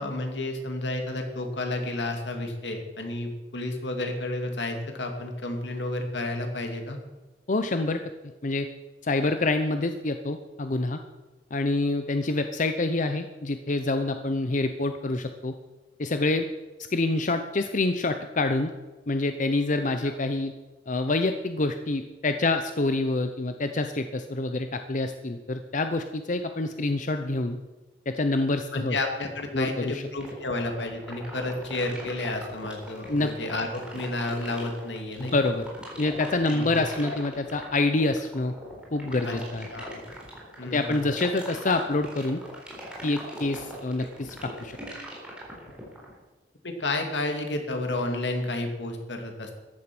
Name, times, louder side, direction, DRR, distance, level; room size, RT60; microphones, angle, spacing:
voice 1, 0.0-7.0 20.0-20.2 28.7-35.3 36.5-36.8 39.3-39.4 39.7-40.0 40.6-41.0 46.6-49.5, left 2 dB, 80° left, 4 dB, 2.4 m, -31 dB
voice 2, 7.5-8.0 8.4-8.7 9.0-11.0 11.5-15.5 16.0-16.5 16.9-18.7 19.1-20.5 20.9-27.6 28.1-29.0 29.5-30.0 33.1-33.3 35.2-35.6 36.0-38.5 38.9-39.7 40.6-42.4 43.0-44.8, left 2 dB, 45° left, 8 dB, 0.7 m, -26 dB
sound 1, 30.2-46.1, equal, 5° right, 4.1 m, -40 dB
14.0 x 11.0 x 6.1 m, 1.2 s
head